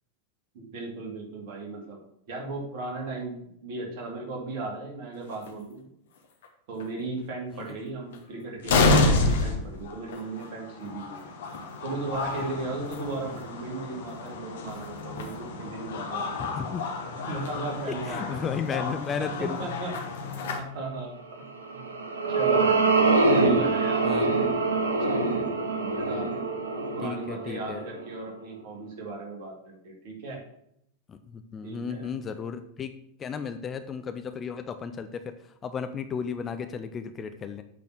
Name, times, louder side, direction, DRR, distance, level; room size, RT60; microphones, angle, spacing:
voice 1, 0.5-2.0 2.3-5.9 6.7-11.2 11.8-16.3 17.3-18.8 19.2-21.2 21.7-21.9 22.3-22.9 23.2-24.3 25.0-26.3 26.9-30.4 31.6-32.1, right 3 dB, 45° right, 0 dB, 2.4 m, -36 dB
sound 1, 5.3-5.5 6.4-6.5 6.8-6.9 8.1-8.2 8.6-20.6, left 3 dB, 60° left, 1.3 m, -29 dB
voice 2, 16.4-16.9 18.1-19.6 24.0-24.3 27.0-27.9 31.1-32.9 33.2-37.6, left 6 dB, 25° left, 8 dB, 0.5 m, -34 dB
sound 2, 21.6-28.2, right 3 dB, 70° right, 1.0 m, -24 dB
8.4 x 4.2 x 6.1 m, 0.74 s
figure-of-eight pair, 90°, 0 cm